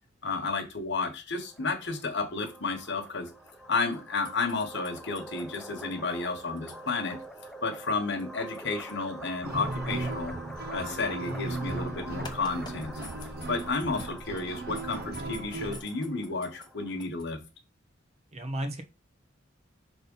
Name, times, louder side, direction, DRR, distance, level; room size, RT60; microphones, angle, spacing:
voice 1, 0.2-3.3 3.7-7.2 7.6-10.3 10.7-12.9 13.5-17.4, left 3 dB, 60° left, 6 dB, 1.4 m, -32 dB
sound 1, 1.3-17.1, right 1 dB, 5° left, 0.5 m, -45 dB
sound 2, 3.9-11.9 12.2-14.5 14.7-16.7 17.0-17.2, left 4 dB, 20° left, 0.9 m, -49 dB
sound 3, 9.4-15.8, right 2 dB, 50° right, 0.8 m, -36 dB
voice 2, 18.3-18.8, right 1 dB, 35° right, 7 dB, 1.2 m, -34 dB
5.8 x 3.7 x 5.5 m, 0.28 s
head